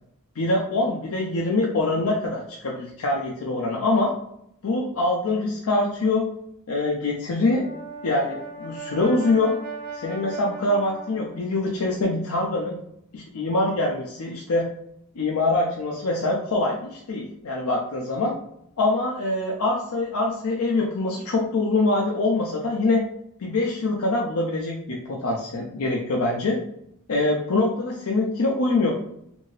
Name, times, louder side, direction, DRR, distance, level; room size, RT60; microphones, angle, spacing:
voice 1, 0.4-4.1 4.6-6.3 6.7-7.6 8.0-9.5 9.9-12.8 13.1-14.7 15.2-18.3 18.8-23.0 23.4-26.6 27.1-28.9, left 2 dB, 75° left, -1 dB, 0.5 m, -24 dB
Brass instrument, 7.3-11.5, right 3 dB, 45° right, 1.0 m, -38 dB
2.8 x 2.6 x 3.1 m, 0.75 s
head